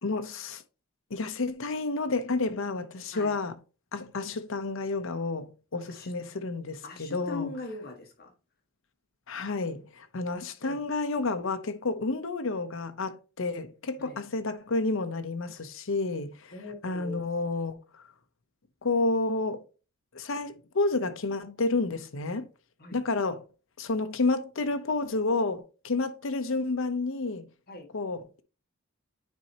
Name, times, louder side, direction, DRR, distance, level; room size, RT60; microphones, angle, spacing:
voice 1, 0.0-0.6 1.1-3.5 3.9-7.5 9.3-16.5 16.8-18.0 18.8-19.6 20.1-22.5 22.9-23.4 23.8-27.4 27.9-28.4, left 3 dB, 65° left, 0.7 m, -30 dB
voice 2, 6.8-8.3 10.6-10.8 14.0-14.2 16.5-17.3 22.8-23.0 27.7-27.9, left 3 dB, 45° left, 1.5 m, -41 dB
9.6 x 4.2 x 2.8 m
head